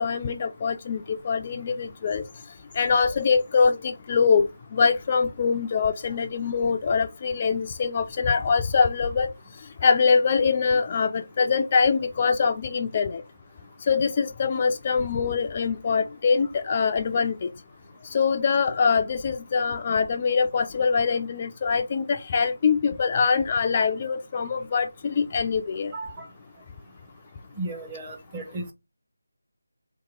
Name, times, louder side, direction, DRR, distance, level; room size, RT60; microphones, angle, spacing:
voice 1, 0.0-2.2 2.7-9.3 9.8-13.2 13.9-17.5 18.0-25.9, left 5 dB, 30° left, 0.3 m, -23 dB
voice 2, 25.9-26.3 27.6-28.7, right 2 dB, 20° right, 0.8 m, -34 dB
3.6 x 2.9 x 3.6 m
figure-of-eight pair, 165°, 0 cm